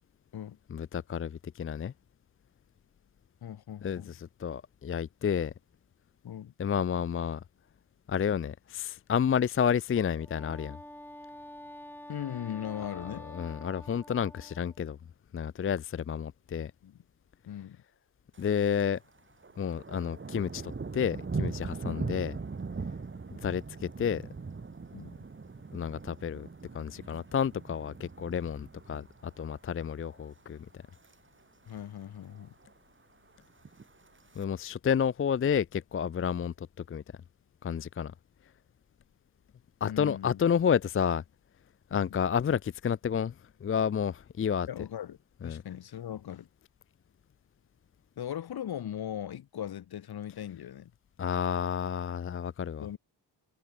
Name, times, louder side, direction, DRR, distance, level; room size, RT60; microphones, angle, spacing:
voice 1, 0.7-1.9 3.8-5.5 6.6-7.4 8.1-10.8 13.0-15.0 15.3-16.7 18.4-19.0 19.6-22.4 23.4-24.2 25.7-26.5 26.7-29.1 29.4-30.7 34.4-37.0 37.6-38.1 39.8-41.2 41.9-43.3 43.6-44.7 45.4-45.6 51.2-52.9, left 7 dB, 30° left, 0.5 m, -30 dB
voice 2, 3.4-4.2 6.2-6.5 12.1-13.3 16.8-17.0 17.5-17.8 21.8-22.0 24.9-25.2 31.7-32.5 39.8-40.4 41.9-42.1 44.7-46.5 48.2-50.9 52.8-53.0, left 10 dB, 60° left, 1.6 m, -39 dB
Wind instrument woodwind instrument, 10.1-14.8, left 1 dB, 5° left, 4.5 m, -48 dB
Thunder, 18.3-18.9 19.2-29.5 29.9-30.3 30.7-31.1 31.4-31.5 31.7-31.8 32.2-32.7 33.5-34.4, right 4 dB, 30° right, 5.1 m, -40 dB
wide cardioid pair, 130°, 42 cm